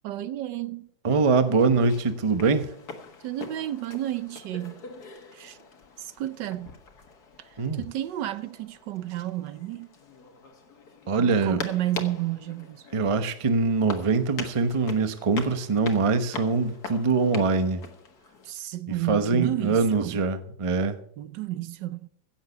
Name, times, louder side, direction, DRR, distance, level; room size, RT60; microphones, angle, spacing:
voice 1, 0.0-0.9 3.2-4.8 5.3-5.6 6.0-6.7 7.4-9.9 11.2-12.9 18.4-20.2 21.2-22.1, right 14 dB, 70° right, 1.2 m, -32 dB
voice 2, 1.0-2.7 7.6-7.8 11.1-11.6 12.9-17.8 19.1-21.0, right 4 dB, 30° right, 0.6 m, -23 dB
sound 1, 1.1-18.5, left 4 dB, 55° left, 2.0 m, -43 dB
16.0 x 7.4 x 6.8 m
omnidirectional pair, 2.1 m